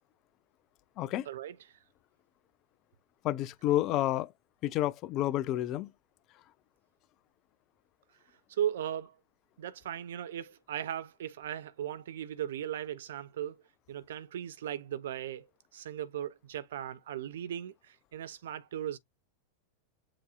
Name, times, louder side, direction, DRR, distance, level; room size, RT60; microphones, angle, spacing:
voice 1, 1.0-1.3 3.2-4.3 4.6-5.9, left 14 dB, 35° left, 0.4 m, -30 dB
voice 2, 8.5-9.2 9.6-13.6 13.9-15.5 15.7-19.0, right 10 dB, 60° right, 0.3 m, -37 dB
7.4 x 2.6 x 2.3 m
figure-of-eight pair, 90°, 0 cm